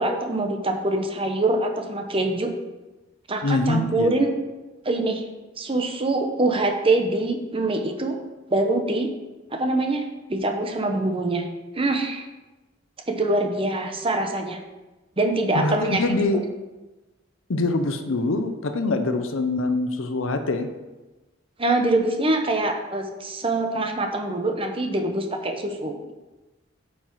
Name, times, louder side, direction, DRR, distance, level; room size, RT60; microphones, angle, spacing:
voice 1, 0.0-2.5 3.3-4.3 4.8-5.2 5.6-8.2 8.5-9.1 9.5-10.0 10.3-11.4 11.7-12.3 13.1-14.6 15.2-16.0 21.6-26.1, right 2 dB, 30° right, 4 dB, 0.9 m, -24 dB
voice 2, 3.4-4.1 15.5-16.4 17.5-20.7, left 2 dB, 90° left, 8 dB, 0.7 m, -24 dB
9.0 x 5.8 x 4.6 m, 1.1 s
head